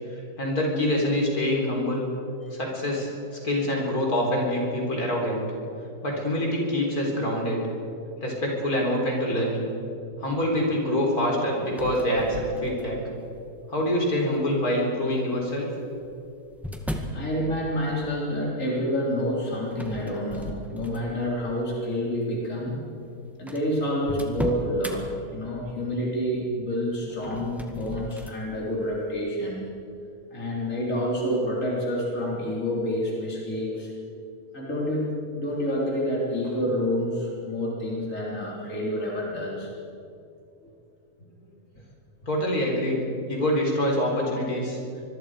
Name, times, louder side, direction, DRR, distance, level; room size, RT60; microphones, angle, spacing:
voice 1, 0.4-2.1 2.5-3.1 3.4-5.5 6.0-7.6 8.2-9.7 10.2-13.0 13.7-15.7 42.3-43.0 43.3-44.8, left 1 dB, 70° left, -1 dB, 4.4 m, -25 dB
sound 1, 11.7-13.1 13.8-14.2 15.3-17.2 19.7-21.3 21.7-22.0 22.8-22.9 23.0-23.1 23.5-25.0 27.1-28.4, equal, ahead, 1.8 m, -36 dB
voice 2, 17.1-22.8 23.4-29.7 30.3-33.9 34.5-35.1 35.3-39.7, equal, 55° left, -4 dB, 4.1 m, -28 dB
26.0 x 21.5 x 5.0 m, 2.6 s
omnidirectional pair, 1.6 m